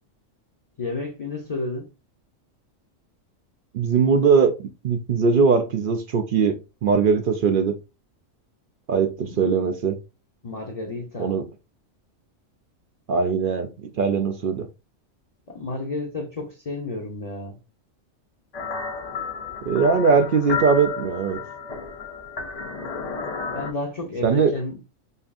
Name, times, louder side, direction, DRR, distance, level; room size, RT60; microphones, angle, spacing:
voice 1, 0.8-1.9 9.2-9.4 10.4-11.4 15.5-17.6 23.5-25.0, left 2 dB, 35° left, 0.6 m, -31 dB
voice 2, 3.7-4.5 4.8-7.8 8.9-10.0 11.2-11.4 13.1-14.7 19.6-21.4 24.2-24.5, right 5 dB, 70° right, 0.5 m, -20 dB
sound 1, 18.5-23.7, left 5 dB, 70° left, 0.3 m, -32 dB
5.3 x 2.5 x 2.5 m
omnidirectional pair, 1.4 m